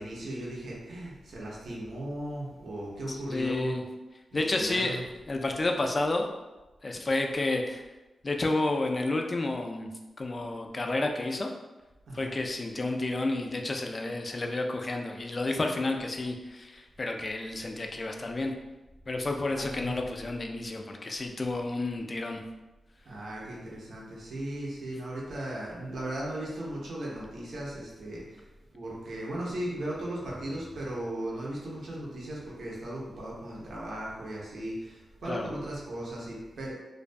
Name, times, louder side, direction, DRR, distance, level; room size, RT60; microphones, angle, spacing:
voice 1, 0.0-3.8 4.3-5.0 12.1-12.3 19.5-20.0 23.1-28.4 28.7-36.7, right 1 dB, 70° right, -5 dB, 0.6 m, -37 dB
voice 2, 3.1-3.8 4.3-5.0 5.3-6.3 6.8-7.8 8.2-9.9 10.2-11.5 12.1-18.5 19.1-22.4 35.3-35.5, left 2 dB, 40° left, 3 dB, 0.3 m, -30 dB
2.2 x 2.2 x 2.5 m, 1.1 s
cardioid pair, 70°, 0 cm